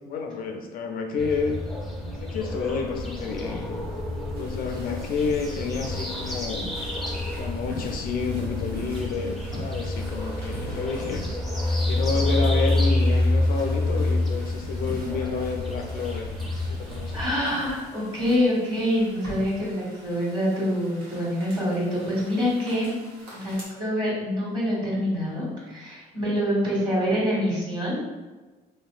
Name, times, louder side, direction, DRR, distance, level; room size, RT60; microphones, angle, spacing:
voice 1, 0.1-1.6 2.2-3.8 4.4-6.7 7.4-11.3 11.8-17.2, left 5 dB, 60° left, 4 dB, 0.4 m, -30 dB
sound 1, 1.2-17.3, left 1 dB, ahead, 0.5 m, -28 dB
sound 2, 3.0-9.1, equal, 70° right, 0.4 m, -41 dB
sound 3, 4.3-23.6, right 1 dB, 85° right, 1.1 m, -44 dB
voice 2, 17.1-23.0 23.3-28.0, equal, 30° right, -6 dB, 1.4 m, -26 dB
3.0 x 2.8 x 2.3 m, 1.3 s
cardioid pair, 110°, 17 cm